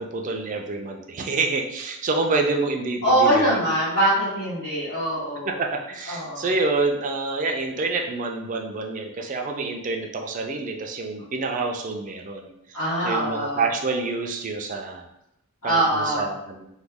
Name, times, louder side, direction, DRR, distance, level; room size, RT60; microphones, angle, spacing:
voice 1, 0.0-3.6 5.5-15.0 15.6-16.7, right 3 dB, 35° right, 3 dB, 0.4 m, -27 dB
voice 2, 3.0-5.6 6.1-6.5 12.7-13.7 15.6-16.3, right 1 dB, 90° left, -13 dB, 1.3 m, -23 dB
3.1 x 2.2 x 3.4 m, 0.81 s
head